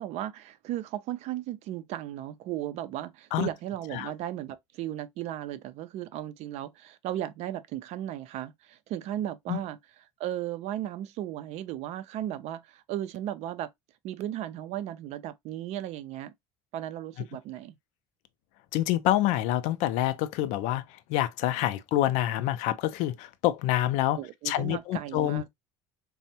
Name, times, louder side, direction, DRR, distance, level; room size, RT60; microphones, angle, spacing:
voice 1, 0.0-9.8 10.2-13.7 14.0-16.3 16.7-17.7 24.2-25.5, right 12 dB, 60° right, 0.4 m, -35 dB
voice 2, 18.7-20.8 21.1-24.2 24.5-25.5, left 13 dB, 70° left, 0.4 m, -27 dB
3.3 x 2.1 x 2.6 m
supercardioid pair, 95°, 13 cm